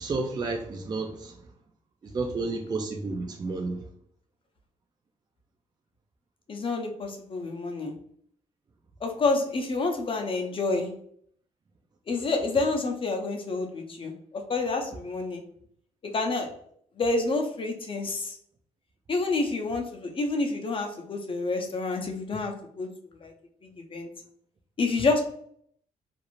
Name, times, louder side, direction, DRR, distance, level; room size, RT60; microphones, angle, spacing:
voice 1, 0.0-1.5 2.0-3.8, right 3 dB, 30° right, 2 dB, 0.4 m, -31 dB
voice 2, 6.5-7.9 9.0-10.9 12.1-15.4 16.1-16.5 17.0-18.4 19.1-22.9 23.2-23.3 23.6-24.1 24.8-25.2, left 3 dB, 40° left, 3 dB, 0.6 m, -28 dB
2.5 x 2.0 x 2.9 m, 0.65 s
cardioid pair, 75°, 14 cm